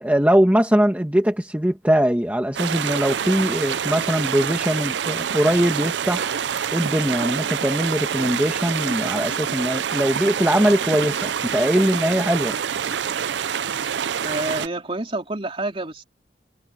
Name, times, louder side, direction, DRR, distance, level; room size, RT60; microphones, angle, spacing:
voice 1, 0.0-6.4 6.7-12.6, equal, 10° right, 1.5 m, -21 dB
sound 1, 2.5-14.7, right 8 dB, 85° right, 0.5 m, -26 dB
voice 2, 14.2-16.0, right 2 dB, 30° right, 3.3 m, -28 dB
head